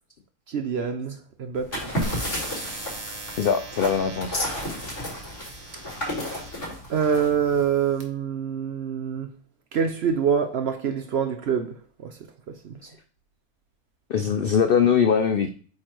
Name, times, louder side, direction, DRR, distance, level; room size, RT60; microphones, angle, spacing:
voice 1, 0.5-1.8 6.9-9.3 9.7-12.2 12.5-12.8, right 7 dB, 60° right, 0.7 m, -26 dB
sound 1, 1.6-7.6, equal, 50° left, 3.6 m, -32 dB
sound 2, 2.0-6.8 7.5-8.0, right 2 dB, 25° right, 1.2 m, -40 dB
voice 2, 3.4-4.4 12.8-12.9 14.1-15.5, left 7 dB, 75° left, 0.5 m, -22 dB
8.4 x 3.2 x 4.5 m
omnidirectional pair, 1.6 m